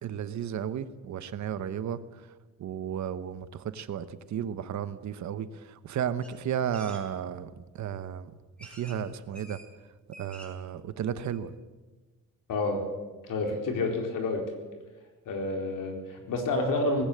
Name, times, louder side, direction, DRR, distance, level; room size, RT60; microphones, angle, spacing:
voice 1, 0.0-2.0 2.6-8.3 8.6-9.6 10.2-11.5, right 9 dB, 60° right, 13 dB, 1.1 m, -33 dB
sound 1, 6.2-6.3 6.7-7.0 7.9-8.0 8.6-9.0 9.3-9.7 10.0-10.6 11.0-11.1 11.3-11.4, right 1 dB, 5° left, 4.2 m, -48 dB
voice 2, 12.5-12.8 13.3-14.4 15.3-17.0, left 2 dB, 75° left, 3 dB, 4.4 m, -29 dB
19.0 x 17.0 x 8.7 m, 1.3 s
wide cardioid pair, 175°, 32 cm